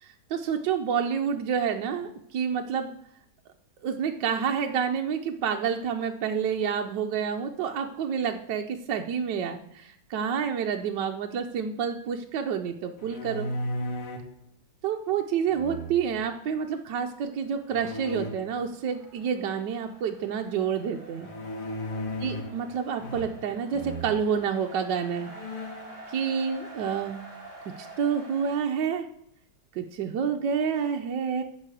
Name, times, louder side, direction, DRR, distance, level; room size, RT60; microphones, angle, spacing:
voice 1, 0.0-2.9 3.8-13.5 14.8-21.3 22.2-25.3 26.1-27.2 27.8-29.1 29.8-31.4, right 7 dB, 65° right, 3 dB, 1.2 m, -28 dB
sound 1, 13.0-14.3 15.5-16.2 17.7-18.3 21.2-22.6 23.0-23.5 23.7-24.1 24.7-24.8 25.2-25.9, left 1 dB, 85° left, 2.3 m, -35 dB
sound 2, 17.1-28.6, right 2 dB, 30° left, 4.5 m, -48 dB
11.5 x 4.8 x 7.6 m, 0.71 s
omnidirectional pair, 2.3 m